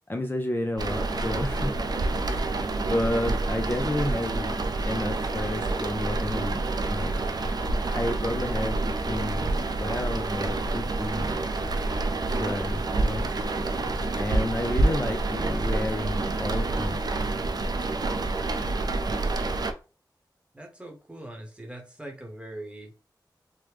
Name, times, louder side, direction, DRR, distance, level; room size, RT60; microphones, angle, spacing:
voice 1, 0.1-1.9 2.3-2.5 2.8-4.6 4.9-6.6 6.9-7.2 7.9-11.4 12.4-13.3 14.2-17.0, left 1 dB, 25° left, 0.5 m, -31 dB
sound 1, 0.8-19.7, right 2 dB, 60° right, 0.4 m, -28 dB
voice 2, 20.5-22.9, right 1 dB, 15° right, 1.0 m, -41 dB
3.2 x 2.1 x 3.3 m
wide cardioid pair, 60°, 8 cm